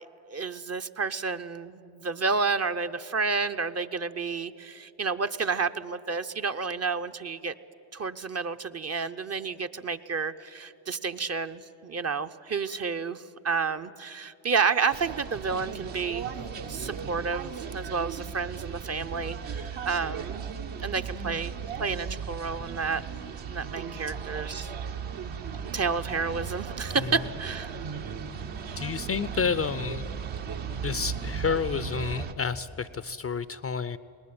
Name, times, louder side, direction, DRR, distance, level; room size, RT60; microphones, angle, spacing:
voice 1, 0.0-7.5 7.9-16.3 16.7-20.4 20.8-21.5 21.8-23.0 23.5-24.7 25.7-27.7, right 5 dB, 30° right, 10 dB, 0.8 m, -30 dB
sound 1, 14.9-32.3, right 6 dB, 65° right, 1.5 m, -36 dB
voice 2, 28.8-30.1 30.8-34.0, left 6 dB, 30° left, 16 dB, 0.5 m, -30 dB
19.5 x 19.5 x 8.8 m, 2.9 s
supercardioid pair, 65°, 48 cm